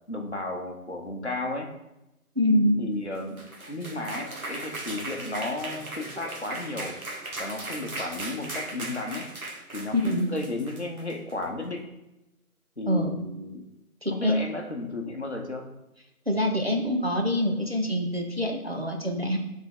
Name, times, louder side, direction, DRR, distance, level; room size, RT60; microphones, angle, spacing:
voice 1, 0.1-1.7 2.5-7.0 7.4-9.3 9.7-11.9 12.8-13.6 14.1-15.6, left 2 dB, 50° left, 2 dB, 0.8 m, -34 dB
voice 2, 2.4-2.9 9.9-10.3 12.9-13.1 14.0-14.4 16.3-19.4, left 1 dB, 45° right, 3 dB, 0.6 m, -25 dB
sound 1, 3.2-11.4, right 2 dB, 70° right, 1.1 m, -38 dB
7.2 x 3.6 x 3.6 m, 0.93 s
figure-of-eight pair, 180°, 45 cm